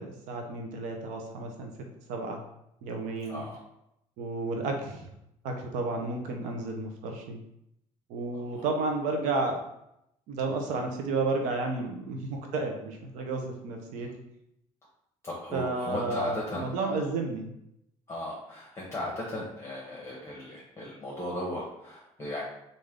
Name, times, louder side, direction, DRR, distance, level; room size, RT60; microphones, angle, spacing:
voice 1, 0.0-1.7 2.1-2.4 2.8-3.4 4.2-5.1 5.4-7.4 8.1-9.6 10.3-14.1 15.5-17.5, right 3 dB, 80° right, 3 dB, 0.7 m, -32 dB
voice 2, 8.3-8.7 14.0-14.1 15.2-17.0 18.1-22.4, left 1 dB, 20° left, -4 dB, 1.1 m, -37 dB
3.3 x 2.6 x 3.6 m, 0.81 s
cardioid pair, 95°, 13 cm